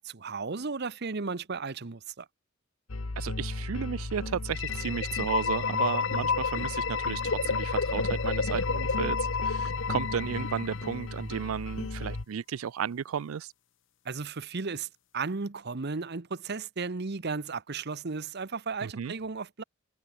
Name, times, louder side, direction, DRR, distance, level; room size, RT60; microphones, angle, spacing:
voice 1, 0.0-2.3 14.0-14.9 15.1-19.6, right 4 dB, 50° right, 0.9 m, -34 dB
sound 1, 2.9-12.2, left 2 dB, 80° left, 1.2 m, -36 dB
voice 2, 3.2-13.5 18.8-19.1, right 7 dB, 80° right, 0.4 m, -33 dB
sound 2, 4.5-11.3, left 5 dB, 60° left, 1.1 m, -30 dB
head